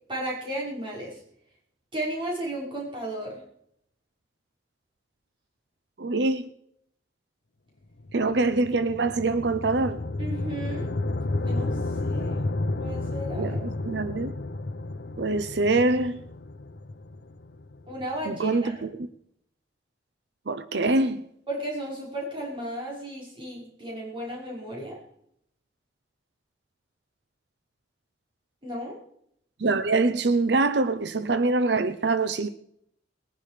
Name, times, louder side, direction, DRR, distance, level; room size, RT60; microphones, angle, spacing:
voice 1, 0.1-1.2 1.9-3.4 10.2-10.9 11.4-11.7 12.0-12.5 12.8-13.6 17.9-18.8 21.5-25.0 28.6-29.0, right 1 dB, 25° right, 5.3 m, -34 dB
voice 2, 6.0-6.5 8.1-10.0 13.3-14.3 15.2-16.2 18.3-19.1 20.5-21.3 29.6-32.5, right 3 dB, 65° right, 0.7 m, -24 dB
sound 1, 8.0-18.3, left 2 dB, 65° left, 0.8 m, -32 dB
20.5 x 11.0 x 5.0 m
head